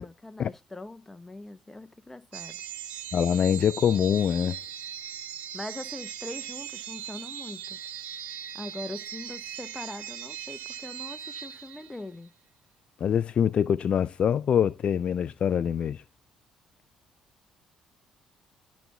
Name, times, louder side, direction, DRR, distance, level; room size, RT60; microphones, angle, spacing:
voice 1, 0.0-2.6 5.5-7.8 8.5-12.3, left 2 dB, 15° left, 1.1 m, -41 dB
sound 1, 2.3-12.2, right 10 dB, 80° right, 1.0 m, -39 dB
voice 2, 3.1-4.6 13.0-16.0, left 8 dB, 55° left, 0.3 m, -24 dB
12.0 x 4.2 x 3.5 m
supercardioid pair, 65°, 2 cm